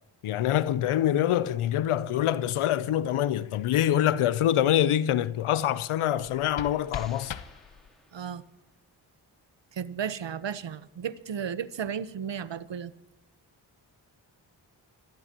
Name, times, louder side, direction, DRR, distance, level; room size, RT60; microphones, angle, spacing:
voice 1, 0.2-7.3, left 11 dB, 85° left, 0.8 m, -25 dB
sound 1, 6.1-8.2, left 8 dB, 65° left, 1.0 m, -40 dB
sound 2, 6.9-8.8, equal, ahead, 3.4 m, -55 dB
voice 2, 8.1-8.4 9.7-12.9, right 8 dB, 60° right, 1.1 m, -34 dB
26.0 x 14.5 x 3.0 m
supercardioid pair, 45°, 50 cm